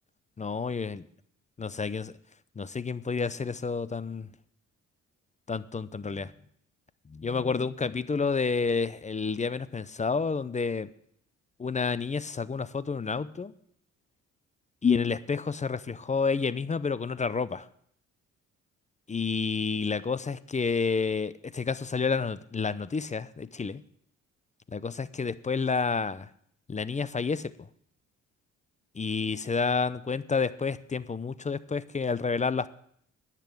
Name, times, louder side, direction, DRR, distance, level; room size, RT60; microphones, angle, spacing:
voice 1, 0.4-1.0 1.6-2.1 2.6-4.3 5.5-6.3 7.1-10.9 11.6-13.5 14.8-17.7 19.1-23.8 24.7-26.3 26.7-27.5 29.0-32.7, left 5 dB, 25° left, 17 dB, 0.7 m, -29 dB
10.0 x 8.5 x 9.2 m, 0.67 s
cardioid pair, 90°, 30 cm